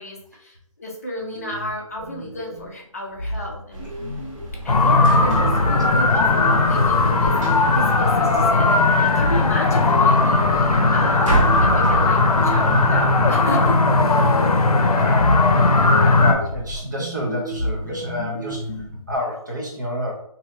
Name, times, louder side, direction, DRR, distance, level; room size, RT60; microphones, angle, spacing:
voice 1, 0.0-3.9 4.6-13.8, left 1 dB, 25° left, -2 dB, 0.5 m, -32 dB
sound 1, 1.2-2.8 3.2-8.8 9.2-14.8 15.2-19.2, equal, 45° left, 0.9 m, -31 dB
sound 2, 3.7-12.9, right 2 dB, 60° right, 1.2 m, -29 dB
sound 3, 4.7-16.3, left 3 dB, 90° left, 0.6 m, -17 dB
voice 2, 14.9-20.1, equal, 30° right, -2 dB, 0.6 m, -29 dB
3.0 x 2.7 x 2.8 m, 0.68 s
hypercardioid pair, 175°, 19 cm